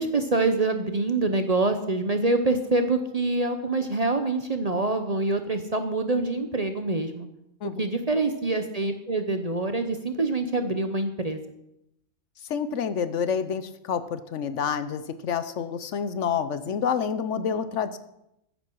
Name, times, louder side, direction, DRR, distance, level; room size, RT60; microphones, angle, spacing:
voice 1, 0.0-7.3 7.8-11.4, right 2 dB, 35° right, 7 dB, 0.7 m, -25 dB
voice 2, 12.5-18.0, left 7 dB, 65° left, 13 dB, 1.0 m, -28 dB
14.5 x 9.7 x 4.6 m, 0.84 s
omnidirectional pair, 1.4 m